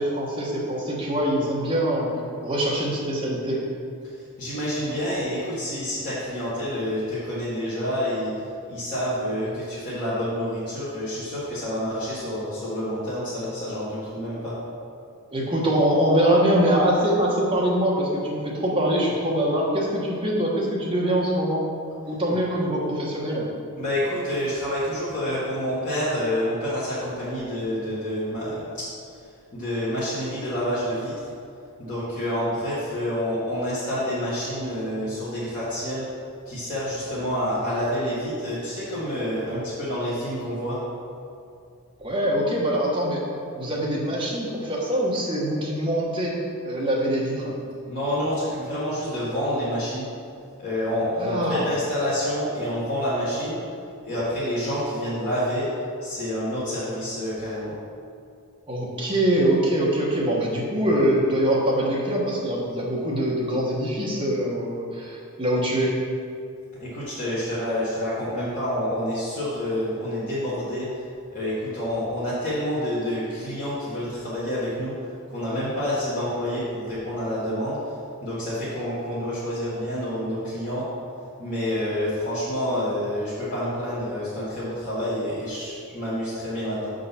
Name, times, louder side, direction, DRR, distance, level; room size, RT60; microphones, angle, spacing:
voice 1, 0.0-2.1 2.4-3.6 15.3-21.6 22.1-23.5 42.0-43.2 43.6-46.3 46.6-47.5 51.2-51.7 58.7-65.9, right 1 dB, 20° right, -4 dB, 1.2 m, -23 dB
voice 2, 4.4-8.3 8.7-14.6 22.3-22.4 23.8-28.8 29.5-31.3 31.8-36.1 36.4-40.8 47.9-50.1 50.6-53.6 54.0-55.7 56.0-57.8 66.8-70.9 71.3-74.9 75.3-77.9 78.2-80.9 81.4-86.9, equal, 35° left, -11 dB, 1.6 m, -28 dB
7.3 x 3.8 x 5.7 m, 2.4 s
head